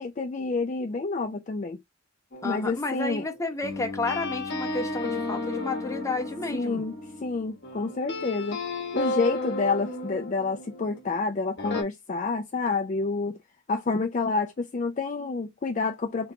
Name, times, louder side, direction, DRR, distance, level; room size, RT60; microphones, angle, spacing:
voice 1, 0.0-1.8 2.4-3.2 6.5-6.9 7.2-8.6 8.9-13.4 13.7-16.3, left 4 dB, 35° left, 0.4 m, -28 dB
sound 1, 2.3-11.1 11.6-11.8, left 2 dB, 55° left, 1.0 m, -34 dB
voice 2, 2.4-6.8, left 3 dB, 15° left, 0.9 m, -31 dB
3.5 x 2.9 x 3.7 m
head